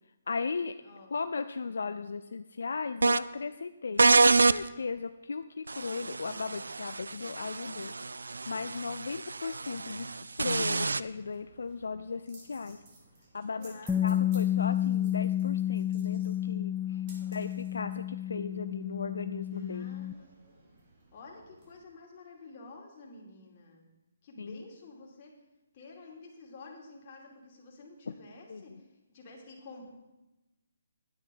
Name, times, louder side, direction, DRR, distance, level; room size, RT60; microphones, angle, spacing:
voice 1, 0.3-0.7 1.1-7.9 8.2-12.8 13.3-17.0 17.3-19.9 24.4-24.6 28.5-28.6, left 4 dB, 75° left, 10 dB, 0.4 m, -37 dB
voice 2, 0.8-1.2 13.6-14.6 16.8-17.4 19.7-20.3 21.1-23.8 24.2-25.3 25.7-29.9, left 3 dB, 35° left, -1 dB, 2.7 m, -50 dB
sound 1, 3.0-3.2 4.0-4.6 5.7-11.0, right 3 dB, 85° right, 0.3 m, -27 dB
sound 2, 11.0-21.8, right 2 dB, 35° right, 3.8 m, -58 dB
Bass guitar, 13.9-20.1, left 11 dB, 5° left, 0.3 m, -30 dB
9.9 x 9.7 x 5.2 m, 1.0 s
hypercardioid pair, 155°, 0 cm